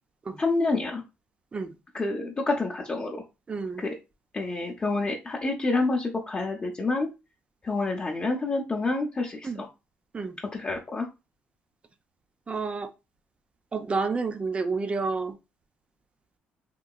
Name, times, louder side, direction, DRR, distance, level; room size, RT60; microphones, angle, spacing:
voice 1, 0.4-1.0 1.9-3.2 3.8-4.0 4.3-7.1 7.6-9.7 10.5-11.1, left 3 dB, 25° left, 0.7 m, -28 dB
voice 2, 3.5-3.8 9.4-9.6 10.1-10.4 12.5-12.9 13.7-15.3, right 4 dB, 30° right, 0.5 m, -29 dB
3.7 x 2.8 x 2.3 m
cardioid pair, 105°, 4 cm